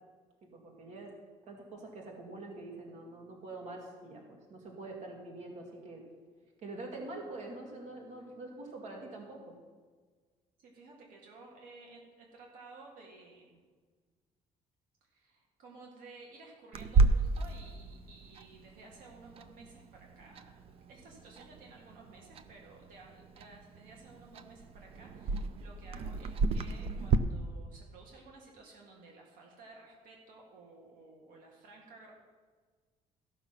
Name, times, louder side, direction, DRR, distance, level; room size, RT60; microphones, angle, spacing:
voice 1, 0.5-1.1 1.4-4.2 4.5-6.0 6.6-9.5, right 2 dB, 60° right, 0 dB, 2.1 m, -45 dB
voice 2, 10.6-13.6 15.1-20.6 20.9-32.1, right 3 dB, 80° right, -1 dB, 2.0 m, -54 dB
Clock, 16.7-27.2, right 4 dB, 45° right, 0.5 m, -33 dB
14.5 x 6.0 x 5.8 m, 1.5 s
cardioid pair, 155°, 14 cm